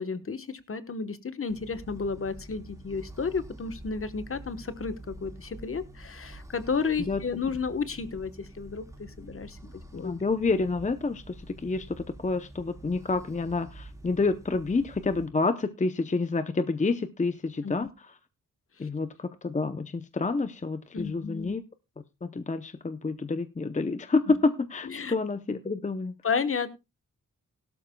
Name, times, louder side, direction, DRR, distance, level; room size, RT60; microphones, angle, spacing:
voice 1, 0.0-9.6 9.9-10.1 17.6-17.9 20.9-21.5 24.3-24.4 24.8-25.1 26.2-26.8, left 5 dB, 45° left, 11 dB, 1.1 m, -32 dB
sound 1, 1.5-15.3, right 1 dB, 10° right, 3.8 m, -47 dB
voice 2, 10.0-11.3 11.6-11.9 12.2-17.9 18.8-21.6 22.2-26.1, left 3 dB, 25° left, 11 dB, 0.7 m, -28 dB
17.0 x 12.5 x 2.2 m, 0.25 s
wide cardioid pair, 90°, 32 cm